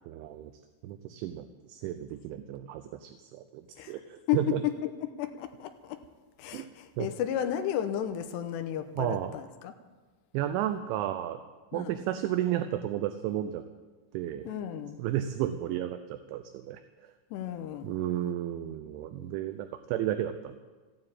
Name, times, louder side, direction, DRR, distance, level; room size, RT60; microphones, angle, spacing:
voice 1, 0.0-0.5 0.8-4.6 6.5-6.7 7.0-7.1 9.0-9.3 10.3-11.4 11.7-13.6 14.1-14.5 15.0-17.1 17.8-20.6, right 12 dB, 80° right, 8 dB, 2.8 m, -33 dB
voice 2, 4.3-6.0 6.4-9.7 11.7-12.0 14.4-15.0 17.3-17.9, left 11 dB, 80° left, 8 dB, 2.5 m, -33 dB
14.5 x 9.7 x 8.7 m, 1.3 s
omnidirectional pair, 5.9 m